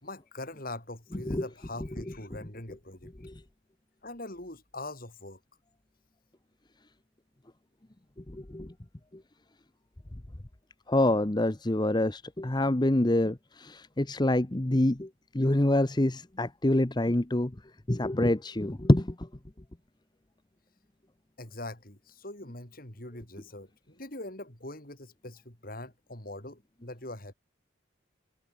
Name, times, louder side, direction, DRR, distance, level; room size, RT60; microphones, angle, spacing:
voice 1, 0.0-3.1 4.0-5.4 21.4-27.3, left 2 dB, 50° left, 5.6 m, -42 dB
voice 2, 8.3-8.7 10.9-15.1 15.3-17.5 17.9-19.1, left 1 dB, 20° left, 0.9 m, -26 dB
head